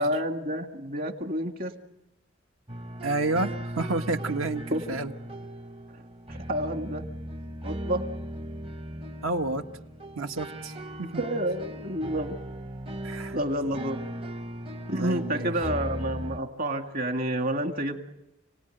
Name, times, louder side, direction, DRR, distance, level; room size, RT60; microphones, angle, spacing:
voice 1, 0.0-1.7 4.7-4.8 6.3-7.0 7.6-8.0 11.2-12.4 13.3-14.0 14.9-18.0, right 1 dB, 50° right, 5 dB, 2.1 m, -29 dB
sound 1, 2.7-16.4, right 1 dB, 30° right, 0.9 m, -38 dB
voice 2, 3.0-5.1 9.2-9.6 10.1-10.7 11.0-11.2 13.0-13.4 13.6-13.7 15.0-15.5, right 2 dB, 80° right, 6 dB, 1.5 m, -30 dB
30.0 x 19.0 x 9.2 m, 0.92 s
head